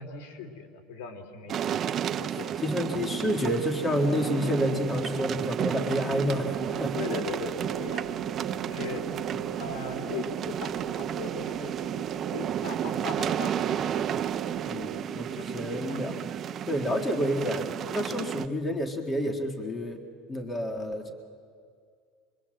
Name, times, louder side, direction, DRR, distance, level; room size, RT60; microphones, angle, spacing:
voice 1, 0.0-2.6 7.0-8.4 8.6-9.0 9.5-14.2 15.3-16.1 16.6-16.7, left 6 dB, 90° left, 7 dB, 3.0 m, -40 dB
sound 1, 1.5-18.5, right 9 dB, 30° right, 0.5 m, -32 dB
voice 2, 2.6-7.0 9.3-9.4 14.7-16.1 16.7-20.0 20.3-21.1, equal, 15° left, 5 dB, 1.9 m, -29 dB
sound 2, 6.1-15.0, right 10 dB, 75° right, 1.3 m, -39 dB
25.5 x 23.5 x 7.7 m, 2.2 s
cardioid pair, 155°, 0 cm